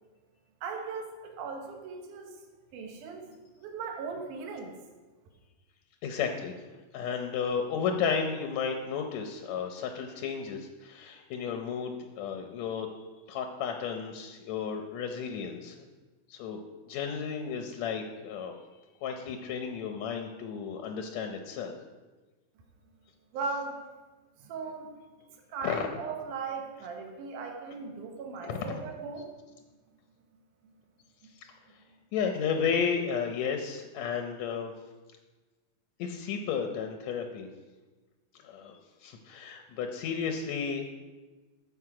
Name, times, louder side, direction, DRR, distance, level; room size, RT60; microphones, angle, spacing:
voice 1, 0.6-2.4 2.7-4.7 23.3-23.9 24.4-25.0 25.5-29.3, right 4 dB, 70° right, 2 dB, 2.6 m, -38 dB
voice 2, 6.0-6.5 6.9-12.9 13.3-15.9 16.3-16.6 16.9-18.5 19.0-21.7 25.6-25.9 28.4-28.8 31.3-31.5 32.1-34.7 36.0-37.5 38.3-40.9, left 6 dB, 75° left, 4 dB, 1.7 m, -33 dB
14.0 x 5.5 x 4.8 m, 1.2 s
omnidirectional pair, 3.9 m